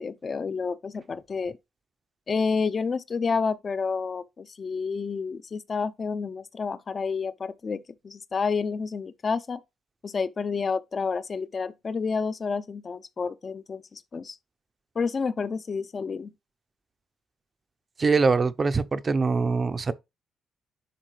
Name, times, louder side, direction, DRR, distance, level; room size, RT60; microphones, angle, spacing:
voice 1, 0.0-1.6 2.3-9.6 10.0-14.4 15.0-16.3, left 5 dB, 40° left, 0.6 m, -29 dB
voice 2, 18.0-19.9, right 4 dB, 35° right, 0.6 m, -23 dB
10.0 x 3.7 x 3.2 m
cardioid pair, 90°, 0 cm